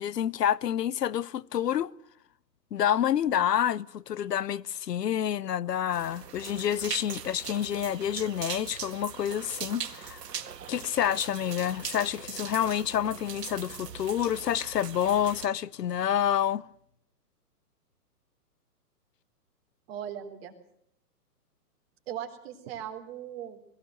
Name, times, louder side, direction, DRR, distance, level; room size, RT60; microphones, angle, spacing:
voice 1, 0.0-1.9 2.7-10.2 10.7-16.6, left 10 dB, 80° left, 1.0 m, -28 dB
sound 1, 5.9-15.5, right 8 dB, 80° right, 2.1 m, -41 dB
voice 2, 19.9-20.5 22.1-23.6, right 10 dB, 40° right, 3.7 m, -38 dB
21.5 x 17.0 x 7.8 m
hypercardioid pair, 150°, 48 cm